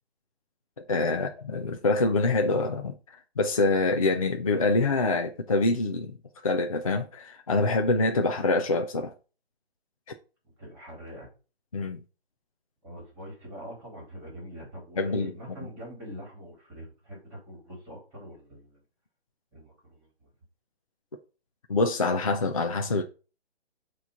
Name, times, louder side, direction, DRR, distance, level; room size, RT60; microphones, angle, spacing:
voice 1, 0.9-6.2 6.4-9.1 11.7-12.0 15.0-15.3 21.7-23.0, left 3 dB, 35° left, 0.4 m, -25 dB
voice 2, 10.6-11.3 12.8-18.8 19.5-20.3, equal, 10° right, 3.4 m, -44 dB
8.1 x 3.1 x 5.5 m
hypercardioid pair, 170°, 31 cm